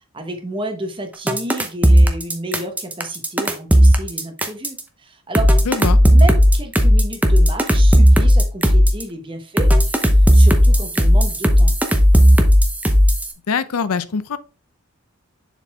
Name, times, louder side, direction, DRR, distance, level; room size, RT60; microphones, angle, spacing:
voice 1, 0.1-5.5 6.0-11.7, right 1 dB, 20° right, 1.0 m, -31 dB
sound 1, 1.3-4.8 5.3-9.0 9.6-13.3, equal, 5° right, 0.6 m, -13 dB
voice 2, 5.7-6.0 13.5-14.4, left 5 dB, 80° left, 0.5 m, -22 dB
7.1 x 4.1 x 3.5 m
head